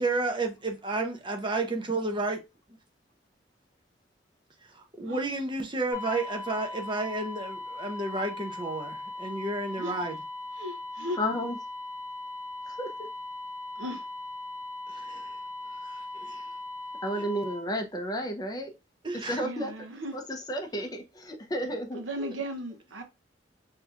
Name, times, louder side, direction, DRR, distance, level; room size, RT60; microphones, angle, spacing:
voice 1, 0.0-2.4 4.8-10.2 14.9-15.4 15.8-16.4 19.0-19.4 22.2-22.3, right 2 dB, 25° right, 0.7 m, -31 dB
sound 1, 5.9-17.6, left 2 dB, 5° right, 1.5 m, -39 dB
voice 2, 10.6-11.2 13.8-14.1 17.2-17.3 19.4-20.2 20.7-20.9 21.9-23.0, equal, 80° right, 0.7 m, -37 dB
voice 3, 11.2-11.6 12.7-12.9 17.0-18.7 19.1-19.9 20.1-22.0, equal, 20° left, 0.6 m, -32 dB
5.3 x 2.8 x 2.4 m
head